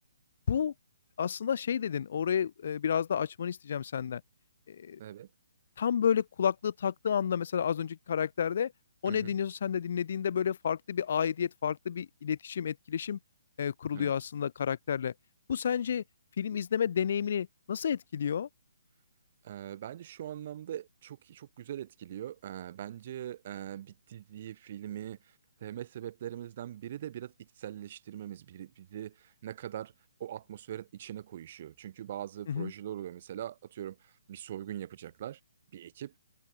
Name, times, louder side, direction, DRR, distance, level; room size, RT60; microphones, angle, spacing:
voice 1, 1.2-4.2 4.7-5.0 5.8-8.7 9.0-13.2 13.6-15.1 15.5-16.0 16.4-18.5 32.5-32.7, left 8 dB, 50° left, 1.3 m, -30 dB
voice 2, 19.4-25.2 25.6-29.9 30.2-35.4 35.7-36.1, right 11 dB, 40° right, 6.3 m, -42 dB
hypercardioid pair, 165°, 0 cm